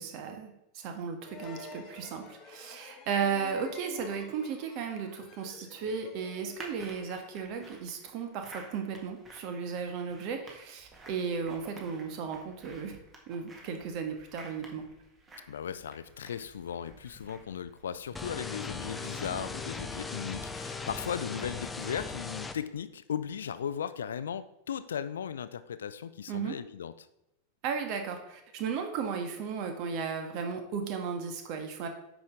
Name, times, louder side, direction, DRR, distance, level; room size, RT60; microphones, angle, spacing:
voice 1, 0.0-13.0 13.3-14.8 26.3-26.5 27.6-31.9, right 6 dB, 45° right, 5 dB, 1.5 m, -35 dB
sound 1, 1.2-7.7, left 4 dB, 30° left, 1.3 m, -50 dB
sound 2, 6.5-22.6, right 2 dB, 15° right, 1.9 m, -53 dB
voice 2, 15.5-26.9, left 8 dB, 65° left, 14 dB, 0.4 m, -37 dB
sound 3, 18.2-22.6, left 4 dB, 10° left, 0.7 m, -38 dB
9.3 x 6.3 x 3.7 m, 0.86 s
figure-of-eight pair, 90°, 0 cm